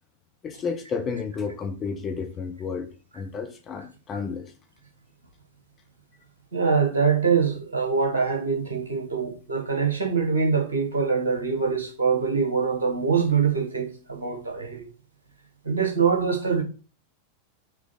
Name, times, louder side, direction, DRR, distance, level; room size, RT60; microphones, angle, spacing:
voice 1, 0.4-4.5, left 5 dB, 25° left, 1.2 m, -32 dB
voice 2, 6.5-14.9 15.6-16.6, right 5 dB, 70° right, 2.3 m, -24 dB
6.1 x 3.9 x 5.6 m
figure-of-eight pair, 90°, 0 cm